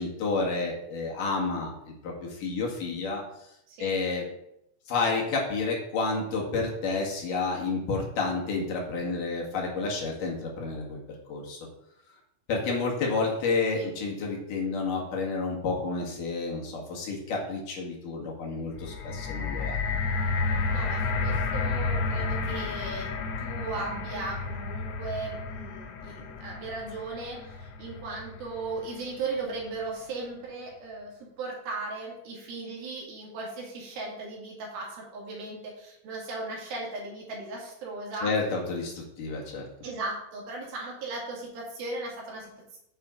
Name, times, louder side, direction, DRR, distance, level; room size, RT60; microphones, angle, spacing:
voice 1, 0.0-3.2 3.8-4.2 4.9-11.0 11.3-11.7 12.5-19.8 38.2-39.6, left 3 dB, 65° left, -2 dB, 3.4 m, -30 dB
sound 1, 18.7-28.9 29.7-29.8, left 4 dB, 85° left, 1.4 m, -31 dB
voice 2, 20.7-23.1 23.4-38.3 39.8-42.8, right 3 dB, 80° right, -3 dB, 4.2 m, -37 dB
8.9 x 7.7 x 3.8 m, 0.78 s
omnidirectional pair, 4.2 m